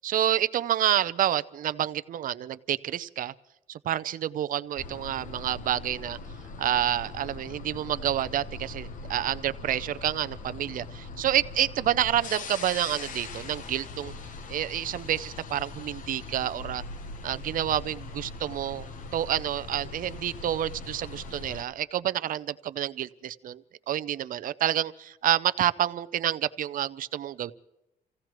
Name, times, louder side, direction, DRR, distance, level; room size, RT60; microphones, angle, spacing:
voice 1, 0.0-3.3 3.7-6.2 6.6-14.1 14.5-16.8 17.2-23.6 23.9-27.5, right 11 dB, 60° right, 15 dB, 0.5 m, -28 dB
sound 1, 4.8-21.6, left 3 dB, 55° left, 1.0 m, -41 dB
29.0 x 16.5 x 3.1 m, 0.90 s
cardioid pair, 160°, 16 cm